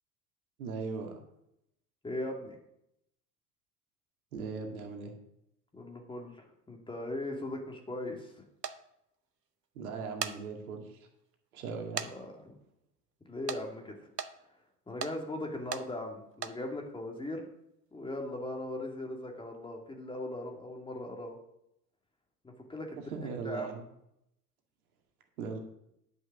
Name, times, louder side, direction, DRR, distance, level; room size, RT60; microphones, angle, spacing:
voice 1, 0.6-1.2 4.3-5.1 9.8-11.0 11.5-12.1 23.1-23.8 25.4-25.6, right 4 dB, 65° right, 3 dB, 2.2 m, -38 dB
voice 2, 2.0-2.6 5.7-8.3 12.0-12.5 13.2-14.1 14.9-17.5 17.9-21.4 22.7-23.0 23.4-23.7, left 1 dB, 10° left, 2 dB, 2.3 m, -39 dB
sound 1, 8.6-8.8 10.0-10.4 10.9-11.0 12.0-12.1 12.4-12.5 13.5-13.6 14.2-14.3 15.0-15.1 15.7-15.8 16.3-16.5, right 6 dB, 90° right, 0.8 m, -36 dB
11.0 x 6.3 x 6.1 m, 0.79 s
figure-of-eight pair, 80°, 47 cm